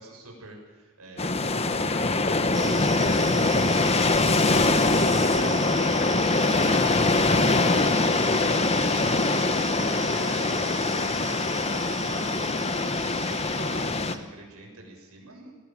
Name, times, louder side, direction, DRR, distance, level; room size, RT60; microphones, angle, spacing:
voice 1, 0.0-8.8 9.0-15.5, right 2 dB, 80° right, 0 dB, 7.1 m, -45 dB
sound 1, 1.2-14.2, left 3 dB, 25° left, 1.1 m, -23 dB
sound 2, 2.5-14.2, right 7 dB, 35° right, 1.9 m, -39 dB
21.0 x 17.5 x 7.5 m, 1.5 s
head